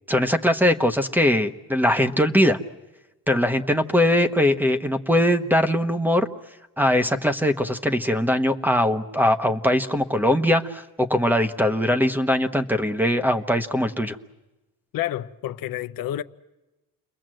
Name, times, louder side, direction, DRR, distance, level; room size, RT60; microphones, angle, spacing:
voice 1, 0.1-2.6 3.3-6.3 6.8-14.2, left 1 dB, 5° right, 1.1 m, -21 dB
voice 2, 14.9-16.2, left 13 dB, 80° left, 0.8 m, -29 dB
29.5 x 22.0 x 7.7 m
cardioid pair, 125°, 34 cm